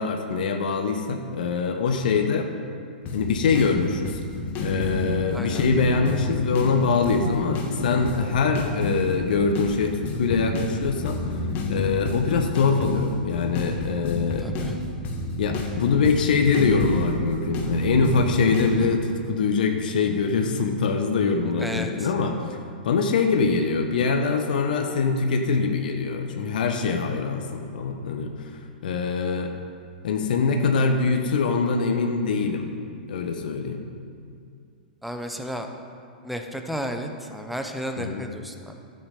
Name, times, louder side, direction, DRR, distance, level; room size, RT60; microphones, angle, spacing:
voice 1, 0.0-2.5 3.1-4.2 4.6-11.4 11.7-14.5 15.4-22.4 22.8-29.5 30.0-32.7 33.1-33.8 38.0-38.2, left 4 dB, 65° left, 4 dB, 1.1 m, -23 dB
sound 1, 3.0-19.0, left 2 dB, 35° left, 1.9 m, -30 dB
voice 2, 5.3-5.6 14.4-14.8 21.6-22.1 35.0-35.7 36.2-38.7, equal, ahead, 5 dB, 1.0 m, -33 dB
13.0 x 8.0 x 5.2 m, 2.3 s
figure-of-eight pair, 110°, 5 cm